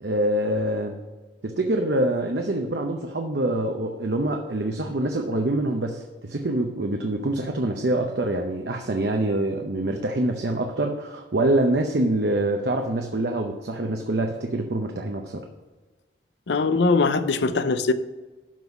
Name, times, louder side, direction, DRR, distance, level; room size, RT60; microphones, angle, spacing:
voice 1, 0.0-1.0 1.4-15.5, right 1 dB, 70° right, 0.7 m, -25 dB
voice 2, 16.5-17.9, left 3 dB, 80° left, 0.6 m, -21 dB
12.0 x 4.1 x 5.8 m
head